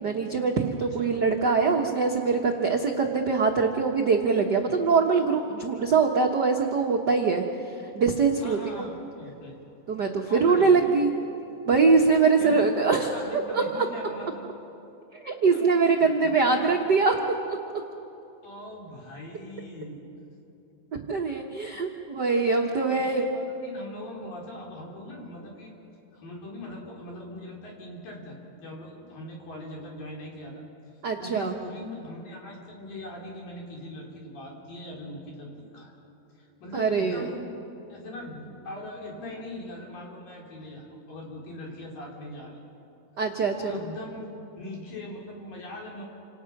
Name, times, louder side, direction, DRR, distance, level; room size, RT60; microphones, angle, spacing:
voice 1, 0.0-7.4 7.9-8.6 9.9-11.1 11.7-13.1 13.5-13.9 15.2-17.1 17.5-17.6 20.9-23.3 31.0-31.6 36.7-37.3 43.2-43.5, right 4 dB, 80° right, 1 dB, 0.9 m, -23 dB
voice 2, 0.8-1.1 8.4-9.6 10.3-10.8 12.4-12.7 13.1-14.4 15.5-15.7 16.0-16.6 18.4-20.0 22.9-25.7 26.1-30.6 31.2-35.9 36.4-37.5 37.9-42.6 43.5-46.0, left 1 dB, 80° left, -1 dB, 5.5 m, -41 dB
29.0 x 27.0 x 6.0 m, 2.9 s
omnidirectional pair, 3.9 m